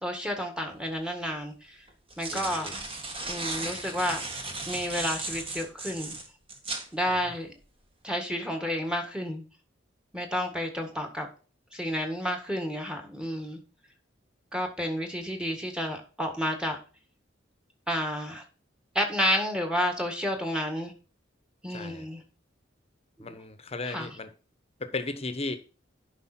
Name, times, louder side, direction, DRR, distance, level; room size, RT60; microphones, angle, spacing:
voice 1, 0.0-1.8 2.2-2.9 3.2-4.3 4.7-6.1 6.9-7.6 8.0-9.4 10.1-11.3 11.7-13.6 14.5-16.8 17.9-18.4 19.0-20.9 21.6-22.2 23.2-23.3 23.9-24.1, equal, 5° right, 1.7 m, -30 dB
sound 1, 0.8-0.9 1.9-6.9, right 2 dB, 30° right, 1.8 m, -36 dB
voice 2, 2.3-2.7 7.1-7.4 21.7-22.1 23.2-24.3 24.8-25.6, left 3 dB, 30° left, 1.1 m, -36 dB
11.0 x 5.2 x 4.4 m
head